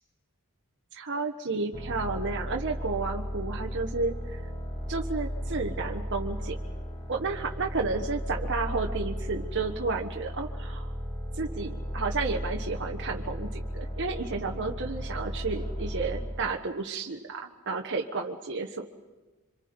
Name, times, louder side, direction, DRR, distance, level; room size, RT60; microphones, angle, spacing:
voice 1, 0.9-4.4 4.9-6.6 7.1-10.9 11.4-18.9, right 3 dB, 55° right, 1 dB, 1.3 m, -32 dB
sound 1, 1.7-16.4, equal, 30° left, 5.5 m, -35 dB
26.5 x 25.5 x 5.3 m, 1.2 s
head